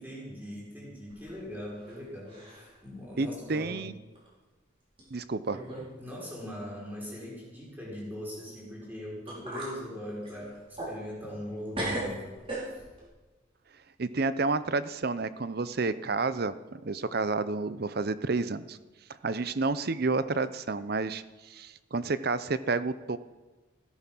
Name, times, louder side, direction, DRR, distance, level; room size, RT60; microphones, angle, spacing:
voice 1, 0.0-3.9 6.0-12.4 12.7-12.8, left 1 dB, 10° right, -5 dB, 5.5 m, -41 dB
sound 1, 1.1-2.0 2.3-2.7 3.2-3.3 4.1-4.3 5.0-5.1 5.5-5.9 6.2-6.3 8.8-8.9 9.3-9.8 10.2-11.5 11.7-13.0, right 1 dB, 30° right, 5.5 m, -37 dB
voice 2, 3.2-3.9 5.1-5.6 14.0-18.8 19.2-23.2, right 3 dB, 50° right, 14 dB, 0.6 m, -30 dB
16.0 x 13.5 x 6.1 m, 1.2 s
head